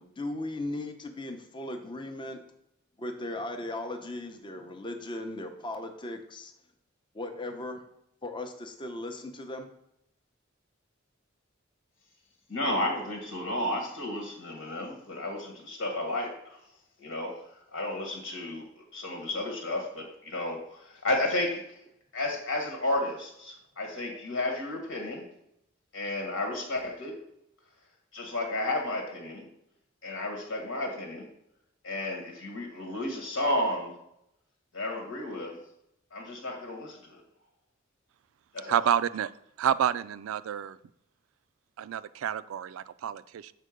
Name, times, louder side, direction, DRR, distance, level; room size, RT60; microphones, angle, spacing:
voice 1, 0.0-2.4 3.0-6.5 7.1-7.8 8.2-9.7, left 2 dB, 25° left, 5 dB, 0.6 m, -37 dB
voice 2, 12.5-16.6 17.0-17.3 17.7-21.6 22.1-25.2 25.9-27.2 28.1-29.5 30.0-31.3 31.8-33.9 34.7-35.6 36.1-37.2 38.5-38.8, left 1 dB, 80° left, 2 dB, 1.5 m, -32 dB
voice 3, 38.7-39.3 39.6-40.8 41.8-43.5, right 9 dB, 80° right, 16 dB, 0.3 m, -29 dB
6.7 x 4.5 x 5.0 m, 0.78 s
head